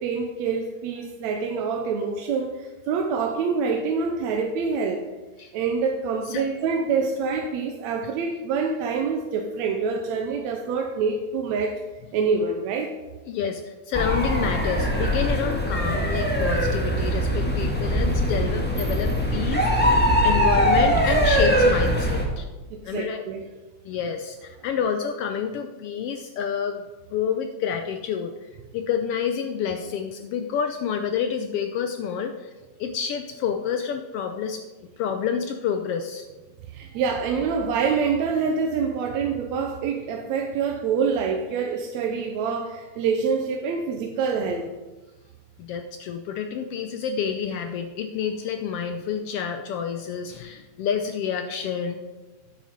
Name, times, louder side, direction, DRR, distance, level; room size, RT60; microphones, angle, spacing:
voice 1, 0.0-5.1 5.5-11.8 12.1-12.9 22.7-23.5 36.7-44.7, right 5 dB, 75° right, 3 dB, 2.0 m, -26 dB
voice 2, 13.3-22.4 22.8-23.2 23.8-26.8 27.1-28.3 28.7-32.5 32.8-34.6 35.0-36.3 45.6-52.0, left 7 dB, 80° left, 6 dB, 1.3 m, -28 dB
sound 1, 13.9-22.3, equal, 5° left, 0.7 m, -22 dB
9.5 x 9.3 x 5.3 m, 1.2 s
omnidirectional pair, 3.3 m